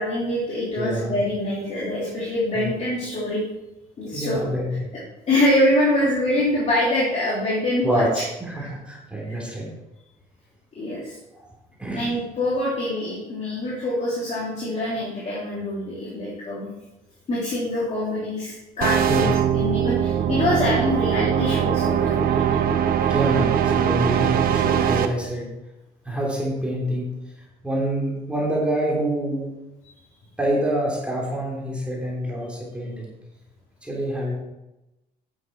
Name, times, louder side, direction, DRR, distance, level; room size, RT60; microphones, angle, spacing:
voice 1, 0.0-3.4 4.0-4.4 5.3-8.2 8.6-8.7 9.2-9.3 10.7-11.2 11.9-16.7 17.3-19.3 19.5-22.7, left 1 dB, 40° left, -6 dB, 3.1 m, -25 dB
voice 2, 0.7-1.1 2.5-2.7 4.1-4.9 7.8-9.6 11.3-11.5 11.8-12.1 19.1-19.3 23.1-25.5 26.0-27.1 27.6-29.5 30.4-33.1 33.8-34.4, right 1 dB, 5° right, -4 dB, 3.3 m, -26 dB
sound 1, 18.8-25.1, right 9 dB, 60° right, 0.9 m, -21 dB
9.4 x 7.6 x 4.6 m, 0.97 s
cardioid pair, 110°, 17 cm